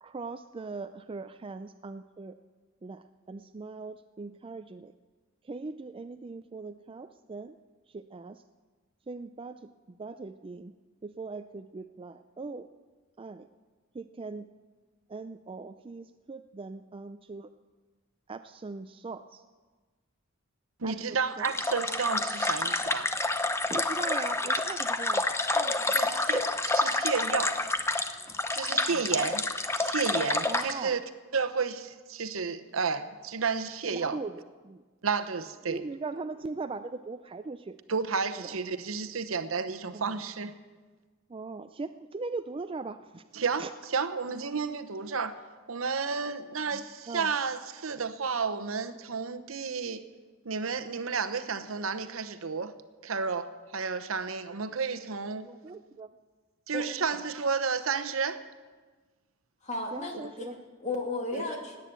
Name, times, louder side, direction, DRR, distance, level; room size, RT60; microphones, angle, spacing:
voice 1, 0.0-2.3 2.8-4.9 5.4-7.5 7.9-8.4 9.1-10.7 11.0-12.7 13.2-13.5 13.9-14.5 15.1-17.5 18.3-19.4 20.8-21.2 21.4-21.5 23.7-25.2 25.5-26.1 28.9-29.3 30.5-31.0 33.9-34.8 35.7-37.8 38.4-38.5 39.9-40.2 41.3-43.2 43.6-43.7 47.1-47.3 55.4-56.1 59.9-60.6, right 3 dB, 25° right, 0.4 m, -40 dB
voice 2, 20.8-23.1 25.9-27.6 28.5-29.4 29.8-31.0 31.3-34.2 35.0-35.8 37.9-40.5 43.3-45.4 45.7-50.0 50.4-52.8 53.0-55.5 56.7-58.4 61.3-61.4, right 5 dB, 75° right, 0.9 m, -31 dB
sound 1, 21.4-30.7, left 2 dB, 15° left, 0.7 m, -28 dB
voice 3, 59.6-61.8, left 2 dB, 35° left, 2.4 m, -34 dB
18.0 x 9.3 x 8.3 m
head